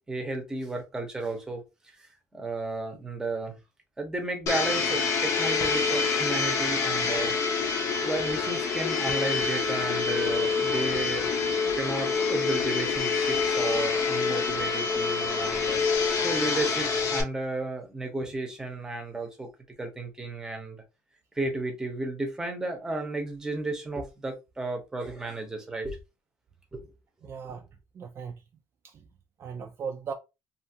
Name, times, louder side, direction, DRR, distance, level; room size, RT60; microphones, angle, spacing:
voice 1, 0.0-1.6 2.0-3.6 4.0-7.4 7.6-7.7 8.0-11.3 11.7-15.8 16.2-19.5 19.8-20.8 21.3-26.0 26.7-26.8, right 2 dB, 10° right, 0.7 m, -33 dB
Domestic sounds home sounds, 4.5-17.2, left 5 dB, 55° left, 0.6 m, -26 dB
voice 2, 27.2-27.7 27.9-28.3 28.8-29.0 29.4-30.1, right 6 dB, 40° right, 0.3 m, -37 dB
2.7 x 2.4 x 2.7 m
cardioid pair, 140°, 7 cm